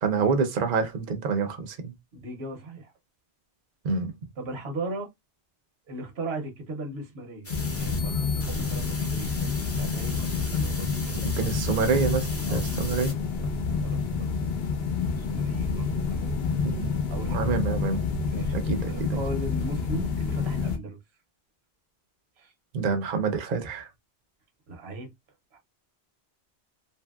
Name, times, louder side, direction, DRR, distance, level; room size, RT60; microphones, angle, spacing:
voice 1, 0.0-1.9 3.8-4.1 11.4-13.1 16.6-16.9 17.3-18.0 18.5-19.2 22.7-23.9, right 5 dB, 55° right, 0.7 m, -27 dB
voice 2, 2.1-2.9 4.4-5.1 5.9-11.2 12.5-12.7 13.4-14.4 15.2-16.4 17.1-17.6 18.2-18.6 18.9-21.0 22.4-22.5 24.7-25.1 25.5-25.6, right 2 dB, 75° right, 1.0 m, -37 dB
sound 1, 7.4-13.1, left 2 dB, 25° left, 0.3 m, -39 dB
sound 2, 7.5-20.8, left 5 dB, 70° left, 0.8 m, -28 dB
2.8 x 2.6 x 2.2 m
omnidirectional pair, 1.1 m